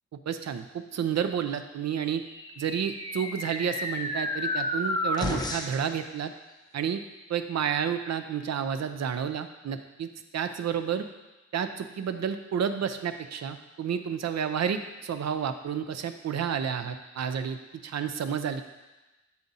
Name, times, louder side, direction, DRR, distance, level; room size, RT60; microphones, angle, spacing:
voice 1, 0.3-2.2 2.6-6.3 6.7-7.0 7.3-10.1 10.3-11.1 11.5-18.6, right 8 dB, 60° right, 9 dB, 0.5 m, -30 dB
sound 1, 2.3-5.9, left 1 dB, 15° left, 0.6 m, -32 dB
7.1 x 5.1 x 4.0 m, 1.1 s
wide cardioid pair, 120°, 30 cm